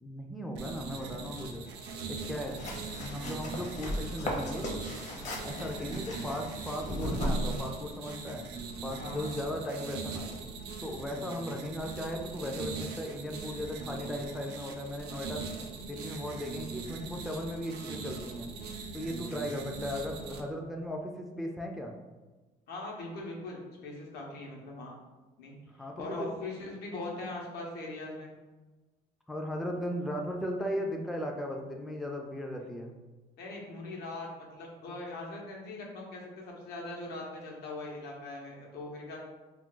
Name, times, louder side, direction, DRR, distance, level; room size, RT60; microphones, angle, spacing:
voice 1, 0.0-1.7 2.1-2.6 2.9-4.7 5.2-8.4 8.8-10.3 10.8-15.5 15.8-18.5 18.9-21.9 25.7-26.3 29.3-33.0, equal, ahead, 1 dB, 0.3 m, -37 dB
sound 1, 0.6-20.4, right 4 dB, 85° right, 0.4 m, -41 dB
sound 2, 2.5-7.6, equal, 45° left, 0.7 m, -36 dB
voice 2, 9.0-9.4 22.7-25.0 25.4-28.3 33.4-39.2, left 2 dB, 75° left, -1 dB, 0.8 m, -41 dB
2.3 x 2.2 x 3.7 m, 1.2 s
cardioid pair, 110°, 17 cm